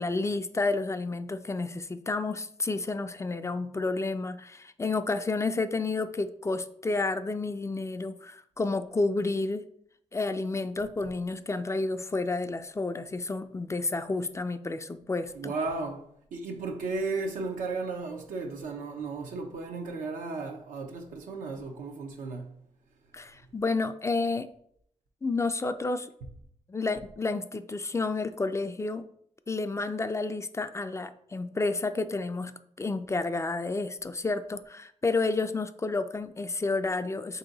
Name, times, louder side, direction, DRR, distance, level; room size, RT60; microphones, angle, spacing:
voice 1, 0.0-9.6 10.1-15.5 23.1-24.5 25.2-26.1 26.7-29.1 29.5-37.4, left 3 dB, 20° left, 0.3 m, -30 dB
voice 2, 15.3-22.5, right 3 dB, 90° right, 0.7 m, -35 dB
3.6 x 2.8 x 3.9 m
cardioid pair, 55°, 13 cm